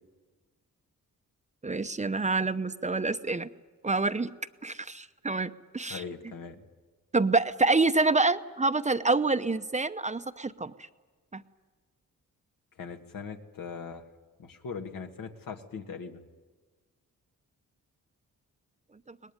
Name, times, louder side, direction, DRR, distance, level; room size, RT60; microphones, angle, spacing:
voice 1, 1.6-3.5 3.8-4.3 4.6-6.0 7.1-10.7 11.3-11.4 19.1-19.2, right 3 dB, 20° right, 10 dB, 0.8 m, -27 dB
voice 2, 5.9-6.6 12.8-14.0 14.4-16.2, left 5 dB, 75° left, 4 dB, 2.1 m, -40 dB
23.5 x 19.5 x 9.7 m, 1.4 s
cardioid pair, 85°, 33 cm